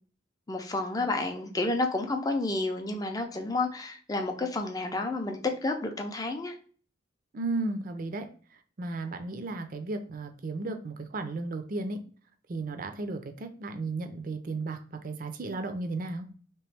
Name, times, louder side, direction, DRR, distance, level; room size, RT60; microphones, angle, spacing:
voice 1, 0.5-6.6, left 2 dB, 20° left, 4 dB, 0.5 m, -30 dB
voice 2, 7.3-8.3 8.8-12.0 12.5-14.8 15.0-16.3, right 3 dB, 50° right, 7 dB, 0.5 m, -34 dB
3.1 x 3.0 x 3.3 m, 0.42 s
head